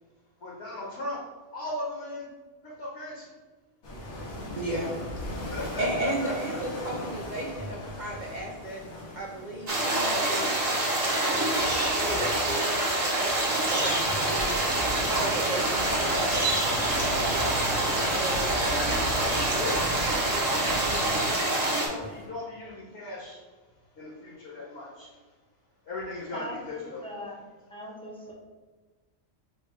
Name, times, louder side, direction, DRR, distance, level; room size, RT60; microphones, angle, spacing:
voice 1, 0.4-1.2 1.5-2.3 2.6-3.3 5.4-6.6 19.5-20.3 21.5-23.4 23.9-25.1 25.9-27.0, left 2 dB, 55° left, -5 dB, 1.1 m, -37 dB
sound 1, 3.8-22.3, left 1 dB, 80° left, 1.4 m, -39 dB
voice 2, 4.6-4.9 5.2-5.4 5.8-8.8 9.2-10.5 11.0-14.6 15.1-16.5 16.8-19.1, right 2 dB, 80° right, -1 dB, 0.4 m, -35 dB
sound 2, 9.7-21.9, right 1 dB, 35° right, 0.8 m, -26 dB
sound 3, 13.7-21.3, right 2 dB, 55° right, 1.0 m, -39 dB
voice 3, 26.3-27.4 27.7-28.3, left 1 dB, 5° left, -5 dB, 0.6 m, -40 dB
4.3 x 2.3 x 4.4 m, 1.3 s
omnidirectional pair, 1.4 m